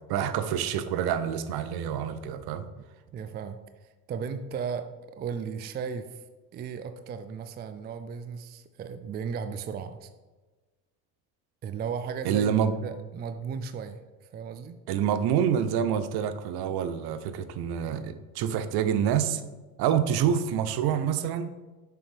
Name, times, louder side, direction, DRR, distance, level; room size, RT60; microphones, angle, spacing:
voice 1, 0.1-2.7 12.2-12.7 14.9-19.4 19.8-21.5, right 9 dB, 55° right, 12 dB, 0.7 m, -27 dB
voice 2, 3.1-4.9 5.1-6.2 6.5-10.1 11.6-14.8, right 6 dB, 25° right, 9 dB, 0.4 m, -36 dB
6.9 x 5.8 x 3.4 m, 1.2 s
hypercardioid pair, 85°, 46 cm